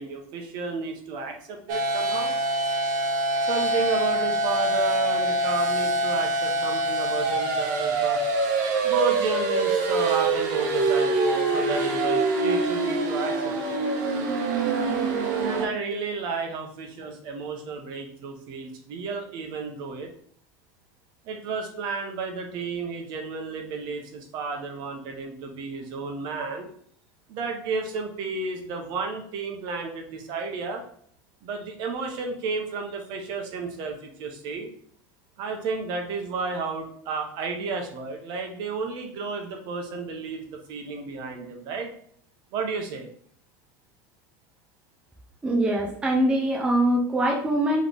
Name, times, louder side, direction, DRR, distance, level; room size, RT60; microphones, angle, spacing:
voice 1, 0.0-2.3 3.4-8.2 8.8-13.7 15.4-20.1 21.2-26.7 27.3-30.8 31.4-34.7 35.4-41.9 42.5-43.1, right 4 dB, 50° right, 3 dB, 0.9 m, -32 dB
sound 1, 1.7-15.7, right 2 dB, 75° right, 0.9 m, -25 dB
voice 2, 45.4-47.9, right 1 dB, 10° right, 0 dB, 0.5 m, -23 dB
3.5 x 3.1 x 3.8 m, 0.62 s
supercardioid pair, 150°, 10 cm